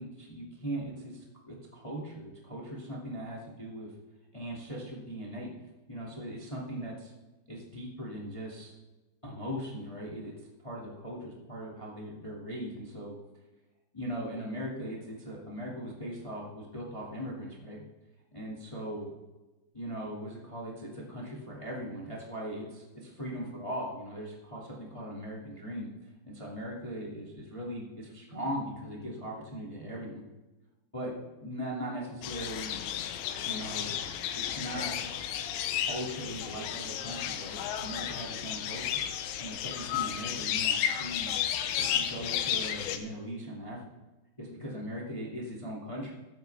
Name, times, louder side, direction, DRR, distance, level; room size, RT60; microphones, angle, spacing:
voice 1, 0.0-3.9 4.3-5.5 5.9-7.1 7.5-8.8 9.2-10.3 10.6-13.2 13.9-17.8 18.3-19.1 19.7-25.9 26.2-30.2 30.9-32.8 33.4-33.9 34.3-34.9 35.9-39.1 39.4-41.4 41.8-43.9 44.4-46.1, equal, 20° left, -4 dB, 0.7 m, -39 dB
sound 1, 32.2-43.0, left 10 dB, 80° left, 3.0 m, -33 dB
20.5 x 8.2 x 3.5 m, 1.1 s
omnidirectional pair, 5.1 m